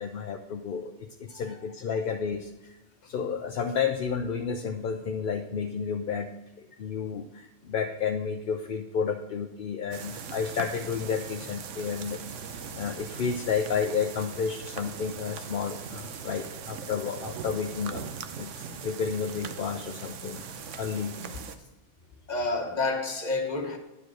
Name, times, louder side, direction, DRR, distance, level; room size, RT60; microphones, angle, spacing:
voice 1, 0.0-2.7 3.0-6.3 6.6-18.1 18.4-20.4 20.8-21.2 21.6-21.7, left 6 dB, 55° left, 0.7 m, -31 dB
sound 1, 9.9-21.6, right 6 dB, 85° right, 1.1 m, -40 dB
voice 2, 22.3-23.8, left 3 dB, 40° left, 1.2 m, -29 dB
11.0 x 5.0 x 6.2 m
omnidirectional pair, 1.2 m